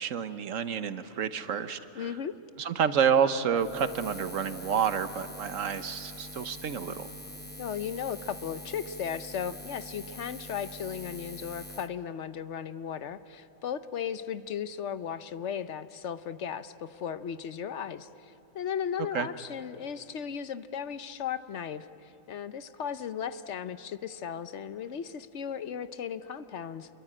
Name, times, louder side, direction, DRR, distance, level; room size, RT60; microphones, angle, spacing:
voice 1, 0.0-2.1 2.6-7.1 19.1-19.3, right 7 dB, 80° right, 11 dB, 1.3 m, -29 dB
voice 2, 1.9-2.3 7.6-26.9, left 8 dB, 65° left, 12 dB, 1.0 m, -36 dB
Buzz, 3.5-11.9, left 1 dB, 10° left, 0.8 m, -44 dB
27.5 x 22.5 x 8.7 m, 2.9 s
omnidirectional pair, 1.3 m